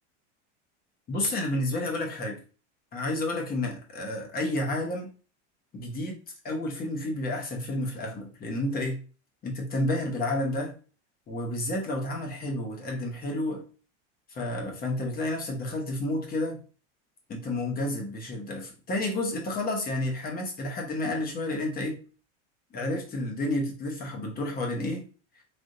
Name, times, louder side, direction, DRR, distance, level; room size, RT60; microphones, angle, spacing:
voice 1, 1.1-2.4 2.9-5.1 5.7-9.0 9.4-10.7 11.3-13.6 14.3-16.6 17.3-22.0 22.7-25.0, left 1 dB, 25° left, 1 dB, 0.9 m, -30 dB
3.4 x 2.7 x 2.5 m, 0.36 s
supercardioid pair, 130°, 36 cm